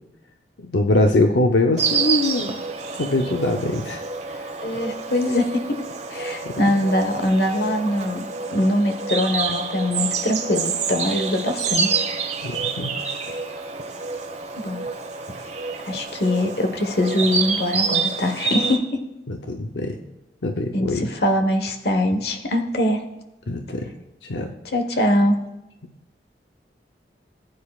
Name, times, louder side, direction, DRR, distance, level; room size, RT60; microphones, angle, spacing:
voice 1, 0.6-2.5 3.0-4.0 4.3-4.5 12.4-13.0 19.3-20.0 20.4-21.0 23.5-23.9 24.2-24.5, left 2 dB, 85° left, 3 dB, 0.7 m, -22 dB
Insect, 1.8-18.8, right 5 dB, 40° right, 1.2 m, -28 dB
voice 2, 4.6-5.8 6.1-8.2 8.5-12.1 14.6-14.9 15.4-15.5 15.9-18.8 20.7-23.0 24.7-25.4, left 1 dB, 65° left, 6 dB, 1.2 m, -22 dB
19.5 x 9.2 x 2.4 m, 0.94 s
head